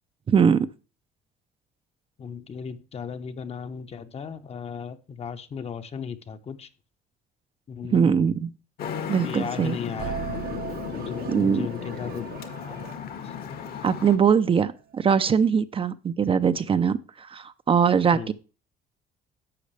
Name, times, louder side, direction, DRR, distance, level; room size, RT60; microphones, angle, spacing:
voice 1, 0.3-0.7 7.9-8.5 9.1-9.8 11.3-11.7 13.8-18.3, right 7 dB, 35° right, 12 dB, 0.6 m, -22 dB
voice 2, 2.2-6.7 7.7-8.1 9.2-10.6 11.0-12.3 12.6-12.9 13.2-13.3 18.1-18.3, left 6 dB, 35° left, 10 dB, 1.0 m, -36 dB
Traffic noise roadway noise, 8.8-14.2, left 7 dB, 65° left, 1.7 m, -35 dB
sound 1, 10.0-14.3, right 8 dB, 60° right, 1.0 m, -38 dB
11.5 x 7.7 x 3.3 m, 0.33 s
cardioid pair, 110°, 17 cm